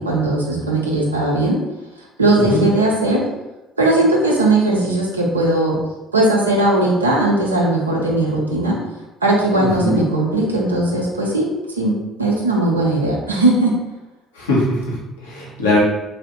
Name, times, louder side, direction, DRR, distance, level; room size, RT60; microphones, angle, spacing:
voice 1, 0.0-1.6 2.2-3.2 3.8-5.8 6.1-8.8 9.2-11.5 11.8-13.7, right 2 dB, 85° right, -2 dB, 0.5 m, -18 dB
voice 2, 9.6-10.0 14.3-15.8, left 1 dB, 75° left, -4 dB, 0.7 m, -21 dB
2.6 x 2.0 x 3.5 m, 1.0 s
figure-of-eight pair, 55°, 0 cm